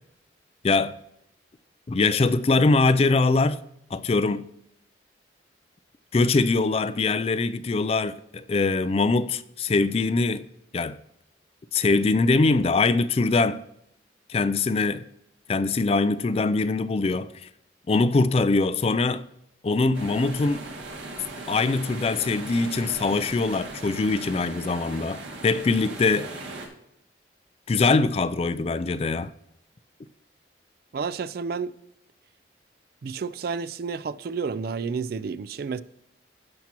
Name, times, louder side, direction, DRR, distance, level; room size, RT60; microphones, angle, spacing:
voice 1, 0.6-1.0 1.9-3.6 3.9-4.5 6.1-10.5 10.7-11.0 11.7-13.6 14.3-15.1 15.5-17.3 17.9-19.2 19.6-20.7 21.5-26.3 27.7-29.3, left 3 dB, 30° left, 0.3 m, -23 dB
sound 1, 19.9-26.7, right 2 dB, 90° right, 2.0 m, -38 dB
voice 2, 30.9-31.8 33.0-35.8, right 5 dB, 55° right, 0.3 m, -30 dB
16.0 x 5.9 x 2.9 m
head